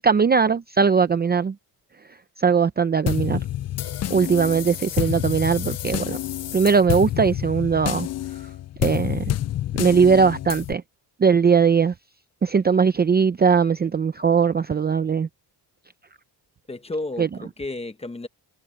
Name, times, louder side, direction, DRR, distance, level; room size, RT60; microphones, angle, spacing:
voice 1, 0.0-1.5 2.4-3.4 4.1-6.2 6.5-8.1 8.8-9.4 9.8-10.8 11.2-11.9 12.4-15.3 17.2-17.3, right 6 dB, 25° right, 0.5 m, -19 dB
sound 1, 3.1-10.7, left 12 dB, 40° left, 0.4 m, -28 dB
voice 2, 16.7-18.3, left 2 dB, 15° left, 0.9 m, -32 dB
cardioid pair, 155°, 42 cm